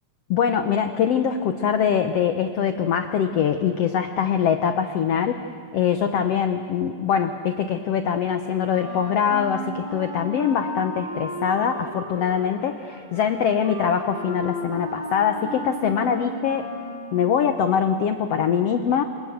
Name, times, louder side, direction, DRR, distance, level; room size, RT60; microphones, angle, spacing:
voice 1, 0.3-5.5 5.7-16.7 17.1-19.0, left 8 dB, 75° left, 8 dB, 1.4 m, -23 dB
Wind instrument woodwind instrument, 8.7-17.3, equal, 30° right, 7.4 m, -34 dB
29.0 x 26.0 x 8.0 m, 2.4 s
omnidirectional pair, 4.1 m